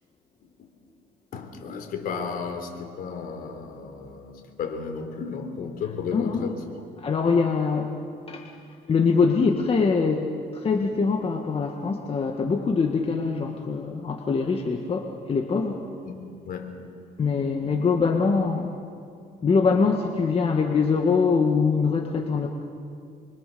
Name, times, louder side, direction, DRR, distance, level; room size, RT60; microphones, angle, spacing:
voice 1, 1.3-6.6 16.1-16.2 16.4-16.8, left 5 dB, 60° left, 5 dB, 3.8 m, -34 dB
voice 2, 6.1-6.5 7.0-7.9 8.3-8.5 8.9-15.8 17.2-18.8 19.4-22.5, left 5 dB, 35° left, 2 dB, 1.8 m, -23 dB
26.5 x 24.0 x 7.0 m, 2.4 s
cardioid pair, 110°, 17 cm